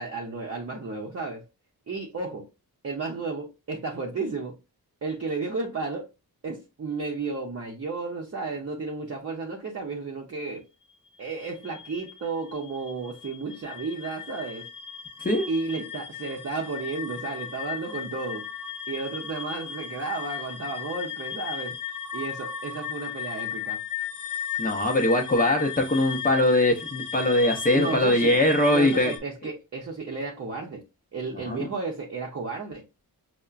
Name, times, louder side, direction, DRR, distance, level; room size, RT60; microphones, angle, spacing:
voice 1, 0.0-1.4 1.9-2.5 2.8-4.6 5.0-6.1 6.4-10.6 11.2-14.7 15.5-18.5 18.9-21.8 22.1-23.8 27.7-28.4 28.7-30.8 31.1-32.8, right 4 dB, 40° right, 0.7 m, -33 dB
sound 1, 11.3-29.2, left 8 dB, 55° left, 0.9 m, -36 dB
voice 2, 24.6-29.1 31.4-31.7, left 1 dB, 25° left, 0.5 m, -22 dB
5.6 x 2.1 x 2.4 m
wide cardioid pair, 125°, 37 cm